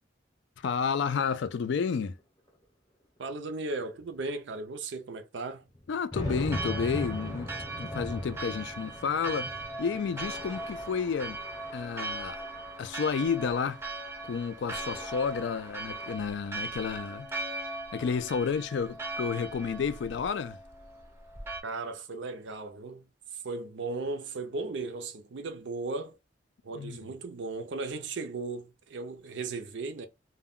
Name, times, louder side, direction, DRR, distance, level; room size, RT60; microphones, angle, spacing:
voice 1, 0.6-2.2 5.9-7.5 7.8-11.4 11.7-12.4 12.8-13.8 14.2-17.3 17.9-20.6 26.7-27.1, left 6 dB, 65° left, 0.3 m, -31 dB
sound 1, 2.2-2.3 2.5-2.6 3.4-3.5 4.0-4.1 5.7-12.1 12.6-13.5, equal, 20° left, 0.7 m, -39 dB
voice 2, 3.2-5.7 21.6-26.2 26.6-30.1, right 3 dB, 65° right, 0.5 m, -36 dB
Church bell, 6.5-21.6, right 2 dB, 15° right, 0.5 m, -39 dB
2.2 x 2.1 x 3.6 m
head